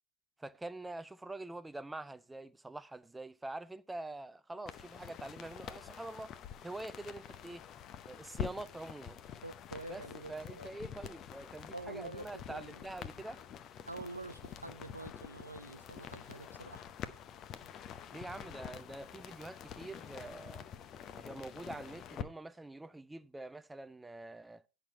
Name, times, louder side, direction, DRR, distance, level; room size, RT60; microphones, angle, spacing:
voice 1, 0.4-6.3 6.6-7.6 8.1-9.2 9.9-13.4 18.1-20.7 21.2-24.6, right 2 dB, 5° right, 0.4 m, -45 dB
sound 1, 4.7-22.2, left 9 dB, 30° left, 0.7 m, -47 dB
voice 2, 9.4-10.7 11.7-12.8 13.9-16.9, right 2 dB, 85° right, 0.6 m, -46 dB
10.0 x 6.3 x 4.4 m
figure-of-eight pair, 90°, 0 cm